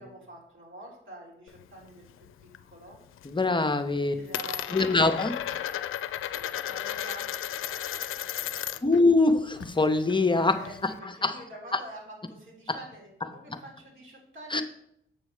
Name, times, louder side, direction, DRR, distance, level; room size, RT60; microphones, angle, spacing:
voice 1, 0.0-3.0 3.6-5.6 6.0-8.9 10.5-14.6, right 1 dB, 70° right, -3 dB, 3.5 m, -48 dB
Coin (dropping), 1.5-2.6 2.9-3.4 3.7-9.0 9.3-11.0, left 11 dB, 90° left, 0.4 m, -35 dB
voice 2, 3.2-4.1 4.7-5.4 8.8-10.9 11.2-11.4 12.7-12.8 13.5-13.6 14.5-14.6, left 3 dB, 25° left, 7 dB, 0.7 m, -23 dB
7.3 x 6.2 x 4.8 m, 0.72 s
cardioid pair, 80°, 21 cm